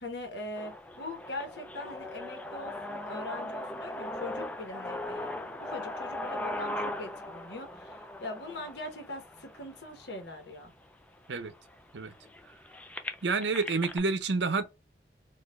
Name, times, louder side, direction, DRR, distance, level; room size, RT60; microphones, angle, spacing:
voice 1, 0.0-10.7, left 2 dB, 70° left, 1.1 m, -41 dB
sound 1, 0.6-10.5 11.2-11.3 11.5-14.0, left 1 dB, 10° left, 0.3 m, -39 dB
voice 2, 13.2-14.6, right 4 dB, 80° right, 0.6 m, -28 dB
4.2 x 2.5 x 2.4 m
head